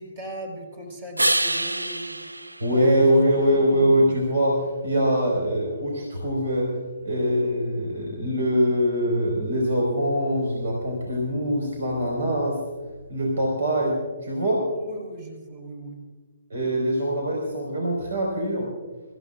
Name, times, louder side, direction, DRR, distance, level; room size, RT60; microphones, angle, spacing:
voice 1, 0.0-2.3 2.7-3.0 3.3-3.7 14.8-16.0, right 1 dB, 40° right, 1 dB, 4.5 m, -39 dB
sound 1, 1.2-3.7 9.5-13.5, right 1 dB, 90° right, 0.6 m, -31 dB
voice 2, 2.6-6.7 7.0-12.6 13.1-14.6 16.5-18.7, equal, 65° right, -1 dB, 4.9 m, -23 dB
26.5 x 15.5 x 2.5 m, 1.3 s
figure-of-eight pair, 135°, 0 cm